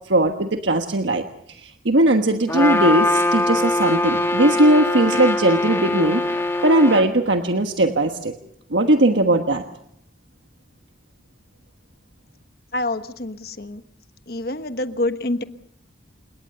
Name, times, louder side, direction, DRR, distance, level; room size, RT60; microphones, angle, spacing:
voice 1, 0.1-6.2 6.6-8.3 8.7-9.6, right 1 dB, 75° right, 5 dB, 1.4 m, -19 dB
Trumpet, 2.5-7.1, left 2 dB, 15° left, 2.0 m, -22 dB
voice 2, 12.7-13.8 14.3-15.4, left 2 dB, 55° left, 9 dB, 1.2 m, -26 dB
29.0 x 18.5 x 6.8 m, 0.73 s
head